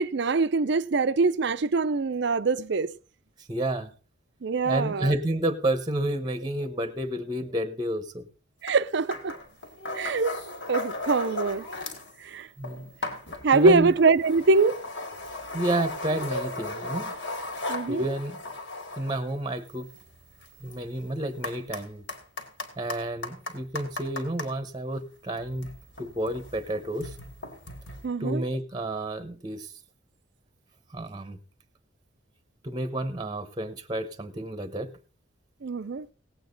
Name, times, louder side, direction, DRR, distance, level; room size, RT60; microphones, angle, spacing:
voice 1, 0.0-2.9 4.4-5.1 8.6-9.3 9.9-10.4 10.7-11.6 12.2-12.5 13.4-14.8 17.7-18.1 28.0-28.4 35.6-36.1, right 4 dB, 60° right, 0.5 m, -23 dB
voice 2, 3.5-3.9 4.6-8.3 12.6-12.8 13.5-13.9 15.5-17.1 17.9-18.4 19.0-19.9 20.6-22.0 22.8-25.7 26.0-27.2 28.2-29.7 30.9-31.4 32.6-34.9, right 1 dB, 20° right, 0.9 m, -30 dB
sound 1, 8.7-8.8 9.1-12.1 12.4-24.5 25.3-28.0, left 2 dB, 70° left, 2.4 m, -37 dB
17.5 x 8.6 x 3.9 m
head